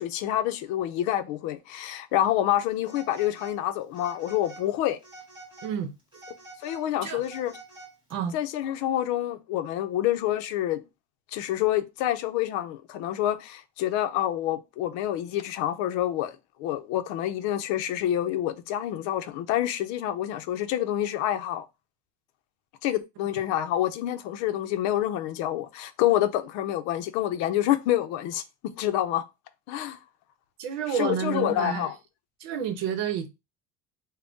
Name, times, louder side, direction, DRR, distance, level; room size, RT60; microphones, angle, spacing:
voice 1, 0.0-5.0 6.6-7.5 8.3-10.8 11.3-21.7 22.8-28.4 28.8-29.2 29.7-30.0 30.9-31.9, left 12 dB, 70° left, 0.6 m, -27 dB
Telephone, 2.8-3.6 3.9-4.7 5.0-5.7 6.1-8.1, right 2 dB, 15° right, 1.6 m, -47 dB
voice 2, 5.6-5.9 7.0-7.2 8.1-8.4 30.6-31.9 32.4-33.3, right 8 dB, 70° right, 0.8 m, -29 dB
3.5 x 2.2 x 3.9 m
cardioid pair, 165°, 30 cm